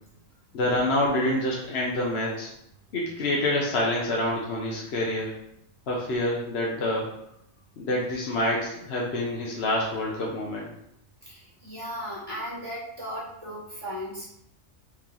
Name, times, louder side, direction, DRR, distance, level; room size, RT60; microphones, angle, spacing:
voice 1, 0.5-2.5 2.9-5.3 5.9-7.1 7.8-10.7, left 1 dB, 60° left, -3 dB, 1.0 m, -27 dB
voice 2, 11.2-14.3, equal, 20° left, -8 dB, 1.5 m, -36 dB
4.6 x 2.9 x 3.8 m, 0.76 s
omnidirectional pair, 1.4 m